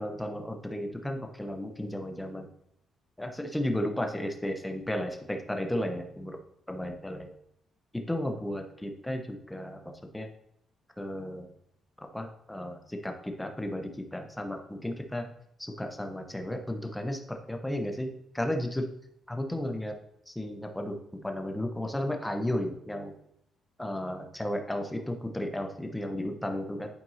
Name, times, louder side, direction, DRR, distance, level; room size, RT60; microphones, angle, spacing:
voice 1, 0.0-2.5 3.2-6.4 6.7-7.3 7.9-10.3 11.0-11.5 12.1-15.3 15.6-18.1 18.3-18.9 19.3-19.9 20.3-23.1 23.8-26.9, left 1 dB, 10° left, 4 dB, 0.9 m, -34 dB
11.0 x 4.4 x 2.8 m, 0.74 s
cardioid pair, 90°, 0 cm